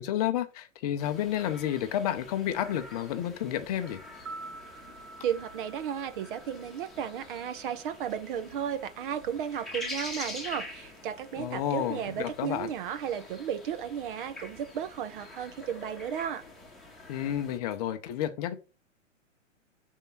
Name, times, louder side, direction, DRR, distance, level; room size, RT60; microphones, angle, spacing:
voice 1, 0.0-4.0 11.4-12.7 17.1-18.6, left 11 dB, 30° left, 0.6 m, -31 dB
sound 1, 1.0-17.6, left 2 dB, ahead, 1.3 m, -46 dB
sound 2, 4.1-8.3 8.5-8.6, right 3 dB, 80° right, 1.3 m, -48 dB
voice 2, 5.2-16.4, right 9 dB, 40° right, 0.7 m, -34 dB
6.5 x 3.6 x 5.8 m
figure-of-eight pair, 120°, 39 cm